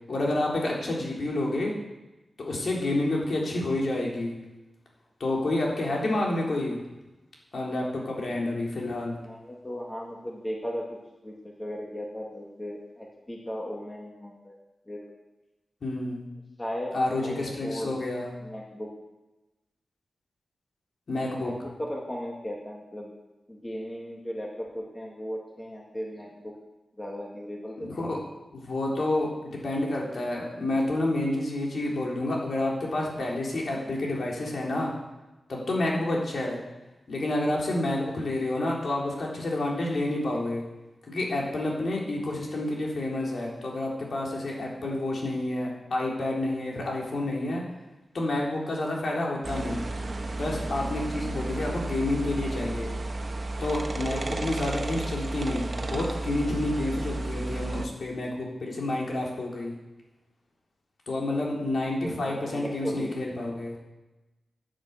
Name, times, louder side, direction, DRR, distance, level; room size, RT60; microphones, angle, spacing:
voice 1, 0.1-1.7 2.4-4.4 5.2-6.8 7.5-9.2 15.8-16.2 16.9-18.3 21.1-21.5 27.8-28.2 28.5-34.9 35.5-36.6 37.1-40.6 41.1-47.6 48.1-49.8 50.4-52.9 53.6-59.7 61.1-63.8, left 2 dB, 60° left, -2 dB, 3.7 m, -29 dB
voice 2, 9.2-10.8 11.2-14.6 14.9-15.1 16.6-16.9 17.2-17.9 18.4-18.9 21.4-23.1 23.5-26.5 27.0-28.1 62.0-63.2, equal, 15° left, -1 dB, 2.3 m, -36 dB
sound 1, 49.4-57.9, right 2 dB, 40° right, 1.3 m, -33 dB
10.5 x 9.1 x 8.2 m, 1.1 s
wide cardioid pair, 95°, 0 cm